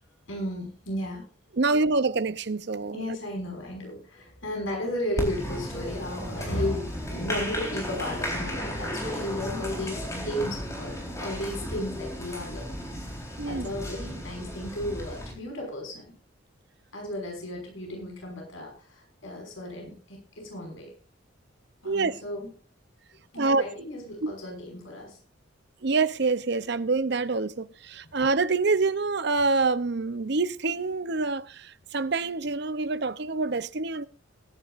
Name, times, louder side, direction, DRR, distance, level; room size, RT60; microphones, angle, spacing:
voice 1, 0.3-1.3 2.9-16.1 16.9-20.9 21.8-22.5 23.3-25.2, left 1 dB, 75° left, 5.9 m, -34 dB
voice 2, 1.6-3.2 13.4-13.7 21.8-22.2 23.4-23.6 24.2-24.3 25.8-34.1, right 3 dB, 55° right, 0.7 m, -26 dB
Applause, 5.2-15.3, equal, 15° left, 4.0 m, -34 dB
21.5 x 11.0 x 2.5 m
head